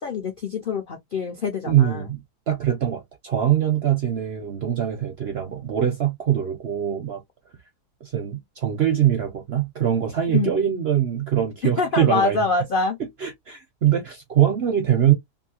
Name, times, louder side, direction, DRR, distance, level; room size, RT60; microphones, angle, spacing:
voice 1, 0.0-2.0 10.3-10.7 11.6-13.0, left 4 dB, 65° left, 0.5 m, -25 dB
voice 2, 1.6-7.2 8.0-12.4 13.2-15.1, right 10 dB, 60° right, 0.6 m, -23 dB
2.6 x 2.6 x 2.7 m
omnidirectional pair, 1.7 m